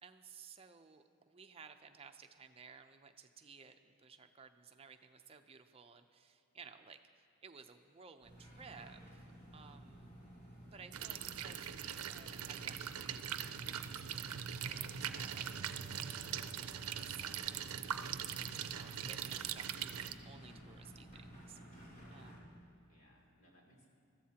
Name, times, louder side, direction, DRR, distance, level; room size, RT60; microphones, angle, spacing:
voice 1, 0.0-9.3 9.5-10.1 10.7-15.5 16.5-18.0 18.6-22.6, right 5 dB, 25° right, 6 dB, 0.5 m, -57 dB
sound 1, 8.2-22.4, equal, 50° left, 2.9 m, -55 dB
voice 2, 9.5-10.0 21.9-22.5 22.9-23.9, equal, 85° left, -2 dB, 3.0 m, -66 dB
sound 2, 10.9-20.1, right 9 dB, 85° right, 0.5 m, -42 dB
Bowed string instrument, 14.9-18.9, right 4 dB, 15° left, 1.3 m, -58 dB
21.0 x 14.0 x 2.9 m, 2.4 s
head